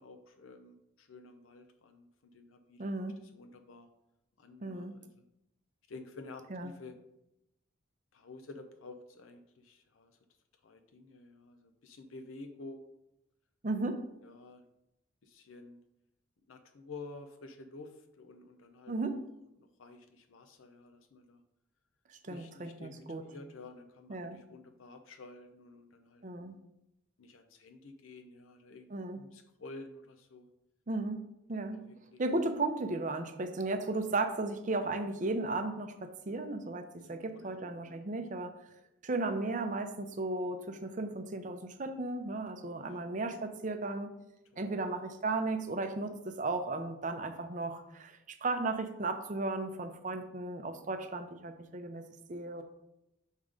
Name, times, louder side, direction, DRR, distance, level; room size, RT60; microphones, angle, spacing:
voice 1, 0.0-2.9 3.3-3.9 4.4-5.2 5.9-6.9 8.1-10.1 10.6-12.9 14.2-14.6 15.2-15.8 16.5-19.2 19.6-21.4 22.3-26.2 27.2-30.5 31.7-32.2 37.0-38.0 42.6-43.1 44.5-44.7, left 3 dB, 90° left, 7 dB, 0.6 m, -51 dB
voice 2, 2.8-3.2 4.6-5.0 6.5-6.7 13.6-14.0 18.9-19.2 22.1-23.2 24.1-24.4 26.2-26.6 28.9-29.2 30.9-31.2 31.5-31.8 32.2-38.5 39.0-44.1 44.6-52.6, right 2 dB, 40° right, 7 dB, 0.6 m, -35 dB
6.4 x 3.6 x 5.1 m, 0.86 s
head